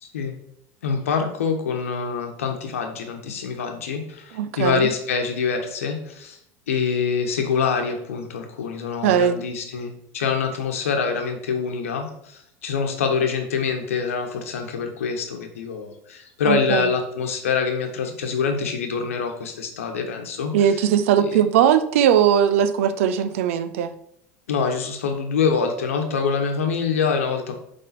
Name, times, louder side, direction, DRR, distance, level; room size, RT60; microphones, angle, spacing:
voice 1, 0.0-0.3 0.8-6.4 6.7-20.5 21.2-21.4 24.5-27.5, left 5 dB, 90° left, 4 dB, 1.1 m, -25 dB
voice 2, 4.3-4.9 9.0-9.4 16.4-16.8 20.5-23.9, right 9 dB, 75° right, 12 dB, 0.6 m, -19 dB
8.2 x 3.6 x 4.1 m, 0.75 s
hypercardioid pair, 95°, 7 cm